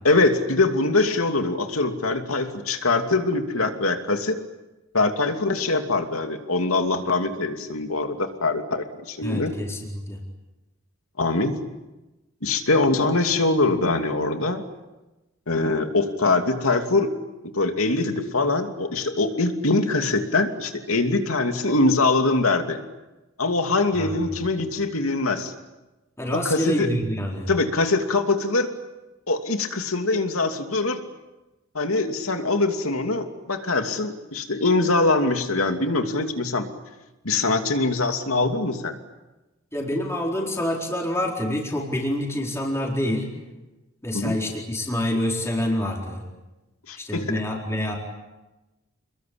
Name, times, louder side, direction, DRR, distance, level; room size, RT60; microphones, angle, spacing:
voice 1, 0.0-4.4 4.9-9.5 11.2-11.6 12.4-14.6 15.5-17.1 17.5-22.8 23.4-25.5 26.3-26.9 27.5-28.7 29.3-31.0 31.7-36.7 37.2-38.9 44.1-44.3 46.9-47.4, left 3 dB, 85° left, 6 dB, 2.7 m, -23 dB
voice 2, 9.2-10.2 23.9-24.2 26.2-27.5 39.7-43.3 44.0-46.3 47.0-48.0, equal, 15° left, -1 dB, 4.3 m, -27 dB
29.0 x 22.0 x 8.7 m, 1.1 s
head